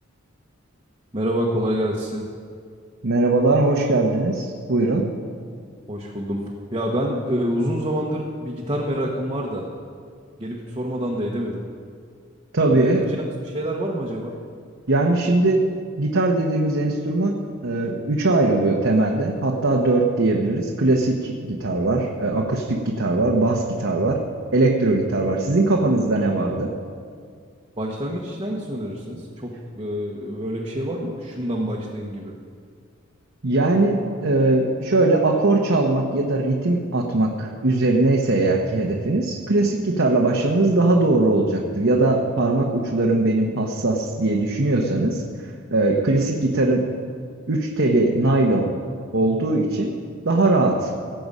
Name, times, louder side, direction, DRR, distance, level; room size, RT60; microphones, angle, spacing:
voice 1, 1.1-2.3 5.9-6.4 6.7-9.7 10.4-11.6 12.7-14.3 26.1-26.2 27.8-32.3, equal, 25° right, -3 dB, 1.2 m, -27 dB
voice 2, 3.0-5.0 12.5-13.0 14.9-15.6 16.0-24.2 24.5-26.7 33.4-45.2 45.7-46.9 47.5-48.7 49.1-49.9 50.2-50.9, right 2 dB, 65° right, -1 dB, 1.0 m, -20 dB
18.0 x 7.8 x 5.5 m, 2.2 s
head